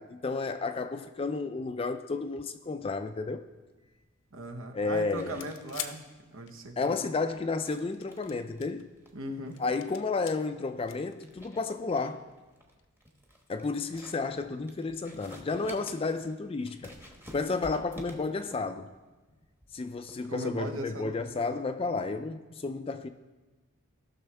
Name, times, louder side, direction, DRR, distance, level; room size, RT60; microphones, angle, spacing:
voice 1, 0.0-3.4 4.7-5.4 6.8-8.9 9.6-12.3 13.5-17.0 17.3-18.9 19.7-23.1, left 3 dB, 25° left, 0.3 m, -32 dB
sound 1, 3.4-22.1, equal, 10° right, 1.1 m, -53 dB
voice 2, 4.3-7.0 9.1-9.6 20.3-21.1, right 1 dB, 75° right, 1.1 m, -38 dB
sound 2, 5.4-7.0 7.8-8.8 9.3-10.3 10.9-11.7 12.8-12.9, left 10 dB, 60° left, 0.6 m, -43 dB
17.5 x 6.2 x 3.3 m
head